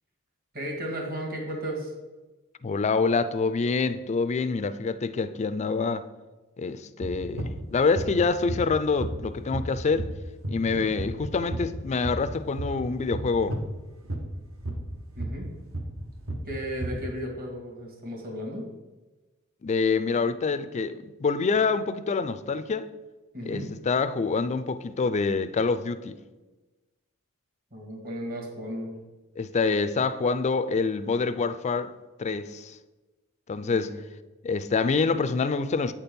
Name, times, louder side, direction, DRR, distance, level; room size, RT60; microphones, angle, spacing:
voice 1, 0.5-1.9 10.6-10.9 15.2-15.5 16.5-18.6 23.3-23.7 27.7-28.9 33.6-34.0, equal, 45° right, 1.9 m, -35 dB
voice 2, 2.6-6.0 6.6-10.1 10.5-13.6 19.6-22.9 23.4-26.2 29.4-31.9 32.2-32.8 33.5-33.9 34.4-35.9, left 4 dB, 30° left, 0.3 m, -26 dB
sound 1, 7.0-13.7 14.0-17.1, right 1 dB, 65° right, 1.1 m, -32 dB
8.5 x 4.3 x 5.2 m
head